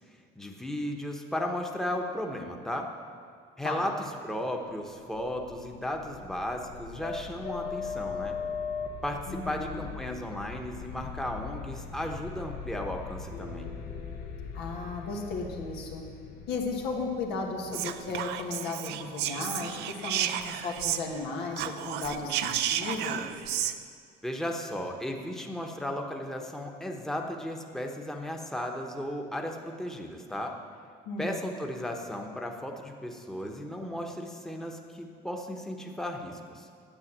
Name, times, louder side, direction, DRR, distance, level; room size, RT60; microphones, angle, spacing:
voice 1, 0.3-2.9 3.6-8.4 9.0-13.7 24.2-30.6 31.2-36.7, left 1 dB, 5° left, 2 dB, 1.0 m, -35 dB
sound 1, 5.0-18.7, left 5 dB, 65° left, 1.2 m, -40 dB
voice 2, 9.3-9.8 14.5-16.0 16.5-20.3 20.6-23.3 31.1-31.5, left 3 dB, 90° left, 0 dB, 1.8 m, -35 dB
Whispering, 17.7-21.3 21.5-23.8, right 11 dB, 85° right, 0.6 m, -32 dB
9.9 x 8.2 x 7.4 m, 2.1 s
cardioid pair, 110°, 17 cm